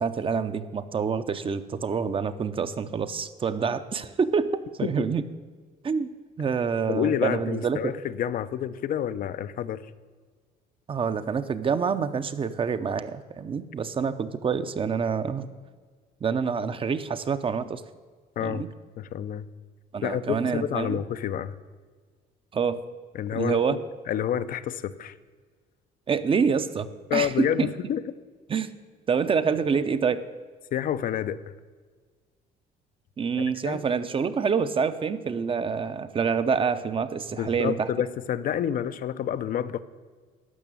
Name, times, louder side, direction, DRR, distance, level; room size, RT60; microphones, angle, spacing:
voice 1, 0.0-5.2 5.8-6.1 6.4-7.9 10.9-15.5 16.2-17.8 18.4-18.7 19.9-21.0 22.5-22.8 23.3-23.8 26.1-27.7 28.5-28.7 29.1-30.2 33.2-37.9, right 6 dB, 30° right, 11 dB, 0.7 m, -27 dB
voice 2, 6.9-9.8 18.4-18.7 19.0-19.5 20.0-21.6 23.1-23.8 24.1-25.1 27.1-28.0 30.7-31.4 33.6-33.8 37.4-39.8, left 9 dB, 55° left, 13 dB, 0.6 m, -28 dB
12.5 x 6.0 x 8.9 m, 1.5 s
cardioid pair, 110°, 17 cm